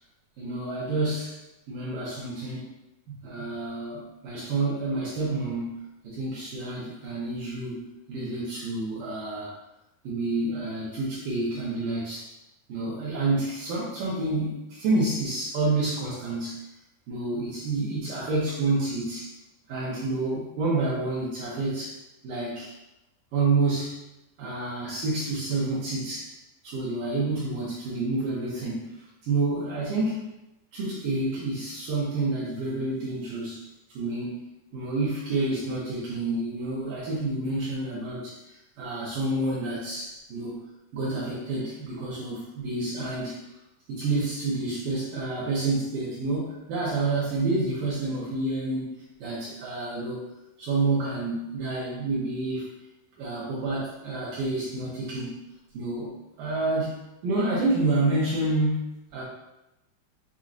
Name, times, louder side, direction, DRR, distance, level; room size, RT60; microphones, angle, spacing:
voice 1, 0.4-1.4 1.7-2.8 3.1-5.8 6.0-7.8 8.1-9.5 10.0-12.3 12.7-16.7 17.1-19.3 19.7-22.7 23.3-24.0 24.4-26.3 26.6-30.3 30.7-33.6 33.9-40.6 40.9-43.6 43.9-48.9 49.2-50.3 50.6-52.7 53.2-55.3 55.7-56.1 56.4-57.0 57.2-58.9 59.1-59.2, right 2 dB, 70° right, -8 dB, 2.3 m, -29 dB
7.2 x 2.7 x 2.5 m, 0.95 s
omnidirectional pair, 4.7 m